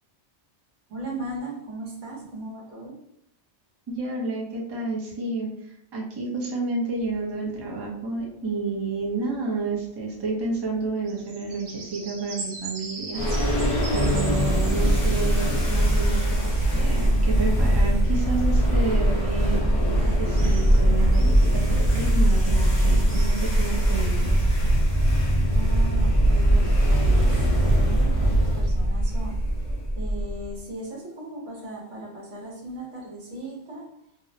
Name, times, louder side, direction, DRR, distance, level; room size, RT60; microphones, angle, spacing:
voice 1, 0.9-3.0 25.5-29.4 29.9-34.0, right 1 dB, 80° right, -2 dB, 1.1 m, -37 dB
voice 2, 3.9-5.5 5.9-13.2 13.9-24.4, right 3 dB, 35° right, -2 dB, 0.4 m, -30 dB
sound 1, 7.0-23.9, right 3 dB, 60° right, 0.7 m, -43 dB
sound 2, 13.1-30.5, right 1 dB, 45° left, 0.4 m, -21 dB
2.6 x 2.0 x 2.5 m, 0.71 s
omnidirectional pair, 1.2 m